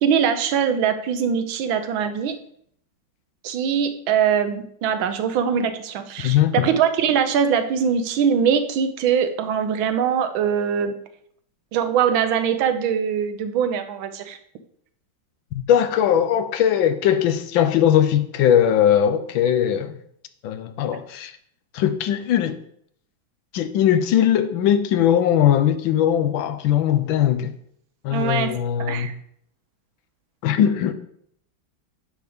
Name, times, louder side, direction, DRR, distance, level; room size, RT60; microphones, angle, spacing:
voice 1, 0.0-2.4 3.4-11.0 11.7-14.4 28.1-28.5 28.8-29.1, right 7 dB, 85° right, 1.5 m, -22 dB
voice 2, 6.2-6.6 15.5-20.0 20.4-21.3 21.7-22.6 23.5-27.5 28.0-29.1 30.4-30.9, left 10 dB, 80° left, 1.4 m, -20 dB
9.7 x 6.1 x 3.5 m
omnidirectional pair, 2.1 m